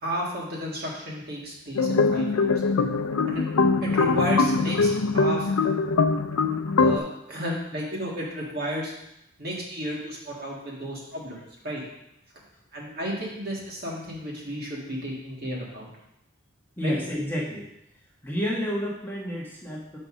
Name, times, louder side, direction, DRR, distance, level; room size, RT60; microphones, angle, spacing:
voice 1, 0.0-2.6 3.3-5.5 6.8-8.9 9.4-11.4 11.6-11.8 12.7-15.9 16.8-16.9, equal, 45° right, -3 dB, 1.8 m, -33 dB
sound 1, 1.7-7.0, left 4 dB, 90° left, 0.5 m, -22 dB
voice 2, 16.8-17.6 18.2-20.0, equal, 10° left, -4 dB, 1.1 m, -30 dB
5.5 x 5.3 x 6.2 m, 0.82 s
head